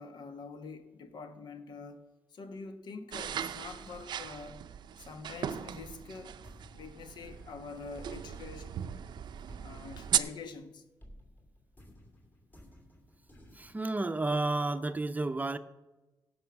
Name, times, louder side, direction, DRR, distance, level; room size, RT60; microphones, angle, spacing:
voice 1, 0.0-2.1 2.3-4.6 5.0-8.7 9.5-10.8, left 4 dB, 75° left, 1.2 m, -46 dB
sound 1, 3.1-10.2, right 9 dB, 80° right, 0.5 m, -37 dB
sound 2, 5.3-10.6 11.0-13.8, equal, 25° left, 2.9 m, -56 dB
voice 2, 13.5-15.6, right 2 dB, 20° right, 0.6 m, -31 dB
16.5 x 5.6 x 5.9 m
cardioid pair, 85°, 8 cm